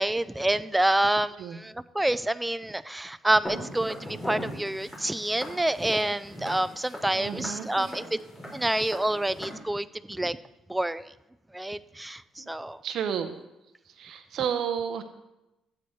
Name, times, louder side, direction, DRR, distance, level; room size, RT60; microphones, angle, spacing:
voice 1, 0.0-8.2 8.5-10.4 10.7-11.0 11.5-12.8, right 1 dB, 5° right, 14 dB, 0.3 m, -27 dB
Walk footsteps, 3.4-9.5, left 1 dB, 15° left, 3.1 m, -40 dB
voice 2, 7.1-7.9 12.4-12.5 12.8-13.3 14.0-15.0, right 8 dB, 65° right, 8 dB, 0.7 m, -31 dB
13.0 x 8.5 x 3.1 m, 0.94 s
cardioid pair, 125°, 0 cm